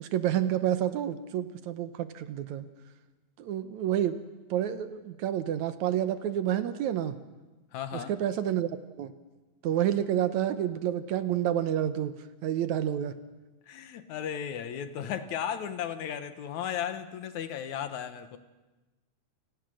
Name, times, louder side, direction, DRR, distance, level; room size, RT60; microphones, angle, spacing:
voice 1, 0.0-2.7 3.4-4.2 4.5-7.2 7.9-9.1 9.6-12.1 12.4-13.1, right 11 dB, 70° right, 11 dB, 2.1 m, -29 dB
voice 2, 7.7-8.1 13.7-18.4, left 9 dB, 70° left, 10 dB, 2.3 m, -35 dB
28.5 x 18.5 x 6.4 m, 1.2 s
omnidirectional pair, 3.6 m